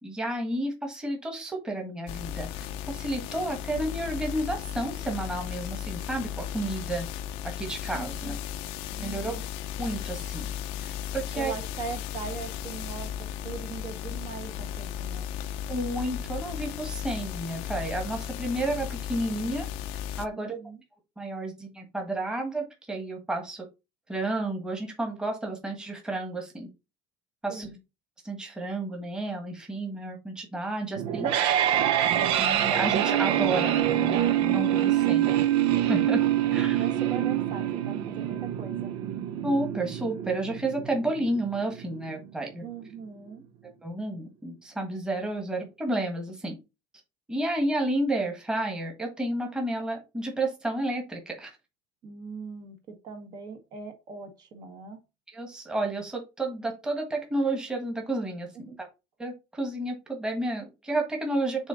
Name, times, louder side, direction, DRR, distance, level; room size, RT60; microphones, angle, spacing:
voice 1, 0.0-7.1 7.6-8.3 9.0-9.3 9.7-10.5 10.8-11.5 15.7-19.7 20.2-20.6 21.2-23.6 24.1-26.7 27.4-27.7 28.2-31.3 32.4-35.3 35.9-36.2 36.5-36.8 39.4-42.6 43.8-46.5 47.3-51.5 55.3-58.9 59.2-61.7, right 1 dB, 5° right, 1 dB, 1.5 m, -31 dB
sound 1, 2.1-20.3, left 10 dB, 65° left, 0.7 m, -35 dB
voice 2, 7.9-8.4 9.0-9.4 11.3-15.3 20.3-20.8 27.5-27.8 36.8-38.9 42.6-43.4 52.0-55.0 58.5-58.8, right 5 dB, 40° right, 5 dB, 1.4 m, -40 dB
sound 2, 31.0-42.0, right 11 dB, 55° right, 0.8 m, -25 dB
6.2 x 3.8 x 5.2 m, 0.26 s
cardioid pair, 160°, 11 cm